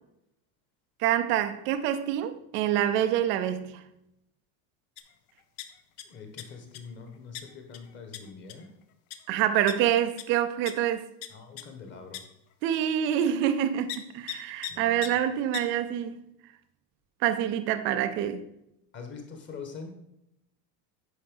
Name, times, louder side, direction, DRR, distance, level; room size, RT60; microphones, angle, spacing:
voice 1, 1.0-3.8 9.3-11.1 12.6-16.2 17.2-18.4, right 10 dB, 25° right, 10 dB, 0.4 m, -26 dB
sound 1, 5.0-5.1 5.4-6.0 6.4-6.8 7.3-7.4 7.7-7.8 8.1-8.2 8.5-8.7 9.1-9.2 9.7-9.8 10.2-10.3 10.7-10.8 11.2-11.3 11.6-11.7 12.1-12.2 12.7-12.8 13.9-14.0 14.3-14.4 14.6-14.7 15.0-15.1 15.5-15.6, left 13 dB, 60° left, 1.0 m, -36 dB
voice 2, 6.0-8.7 11.3-12.2 14.7-15.1 18.9-19.9, left 5 dB, 25° left, 4 dB, 1.4 m, -44 dB
9.7 x 5.6 x 5.4 m, 0.81 s
cardioid pair, 175°, 47 cm